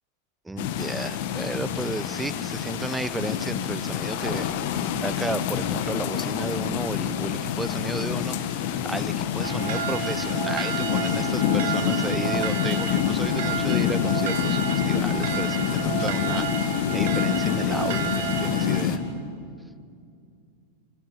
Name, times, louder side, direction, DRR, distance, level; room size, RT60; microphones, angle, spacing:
voice 1, 0.4-19.0, right 2 dB, 5° right, 17 dB, 0.9 m, -33 dB
sound 1, 0.6-19.0, left 9 dB, 50° left, 1.7 m, -27 dB
sound 2, 9.4-18.8, right 9 dB, 55° right, 1.8 m, -31 dB
26.0 x 24.0 x 7.9 m, 2.4 s
figure-of-eight pair, 90°, 0 cm